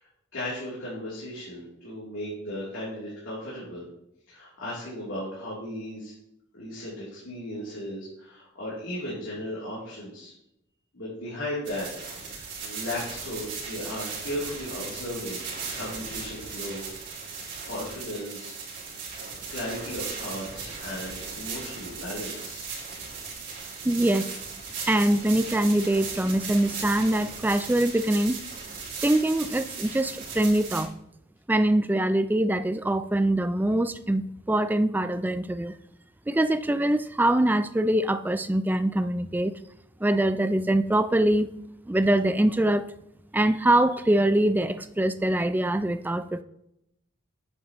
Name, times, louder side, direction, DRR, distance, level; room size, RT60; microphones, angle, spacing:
voice 1, 0.3-3.8 4.3-6.1 6.5-10.3 10.9-11.9 12.1-15.4 15.7-16.8 17.2-18.6 19.3-22.7, left 1 dB, 75° left, -8 dB, 3.0 m, -36 dB
sound 1, 11.6-30.8, right 5 dB, 60° right, 2.8 m, -37 dB
voice 2, 23.8-24.3 24.9-28.4 29.0-30.9 31.5-35.8 36.3-39.5 40.0-41.5 41.9-42.9 43.3-46.4, right 1 dB, 10° right, 12 dB, 0.3 m, -23 dB
9.0 x 8.0 x 3.0 m, 0.79 s
head